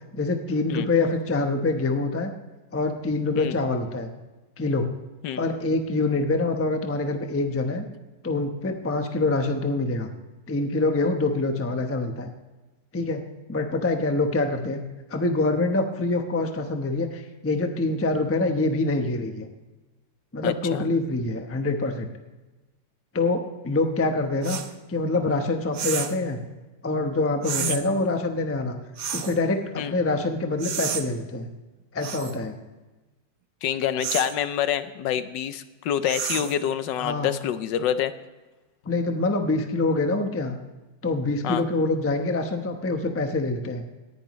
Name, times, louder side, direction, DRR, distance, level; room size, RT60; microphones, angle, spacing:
voice 1, 0.1-2.3 2.7-4.1 4.6-4.9 5.4-7.8 8.2-10.1 10.5-12.3 12.9-13.2 13.5-14.8 15.1-19.5 20.3-22.1 23.1-24.6 24.9-26.4 26.8-28.8 29.1-31.5 31.9-32.6 36.4-36.5 37.0-37.3 38.9-40.6 41.0-43.8, left 2 dB, 15° left, 5 dB, 0.5 m, -25 dB
voice 2, 20.4-20.9 27.6-27.7 29.8-29.9 33.6-38.1 41.4-41.7, left 10 dB, 75° left, 12 dB, 1.3 m, -27 dB
sound 1, 24.4-24.7 25.7-26.2 27.4-27.8 29.0-29.4 30.6-31.0 32.0-32.4 34.0-34.3 36.0-36.6, right 8 dB, 60° right, 1.2 m, -30 dB
18.0 x 11.0 x 3.1 m, 1.1 s
omnidirectional pair, 2.0 m